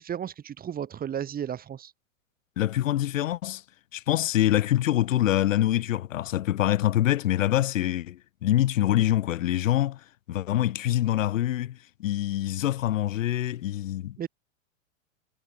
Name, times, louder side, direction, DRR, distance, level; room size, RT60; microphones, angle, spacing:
voice 1, 0.0-1.9 14.2-14.3, right 9 dB, 20° right, 3.2 m, -34 dB
voice 2, 2.6-3.6 3.9-10.0 10.3-14.2, left 13 dB, 70° left, 3.0 m, -25 dB
hypercardioid pair, 130°, 40 cm